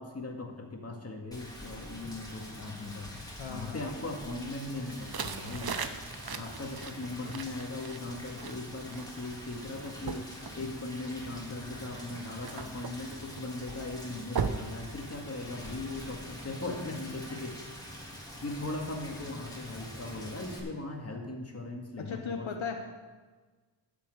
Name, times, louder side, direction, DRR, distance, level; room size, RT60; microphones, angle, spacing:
voice 1, 0.0-3.1 3.5-5.8 6.3-17.6 18.4-22.5, left 2 dB, 30° left, 1 dB, 2.1 m, -39 dB
Rain, 1.3-20.6, equal, 5° left, 2.8 m, -45 dB
voice 2, 3.4-3.8 22.1-22.8, left 6 dB, 70° left, 3 dB, 1.1 m, -36 dB
sound 1, 4.9-15.6, right 6 dB, 50° right, 0.8 m, -41 dB
11.5 x 7.5 x 6.6 m, 1.4 s
wide cardioid pair, 75°, 49 cm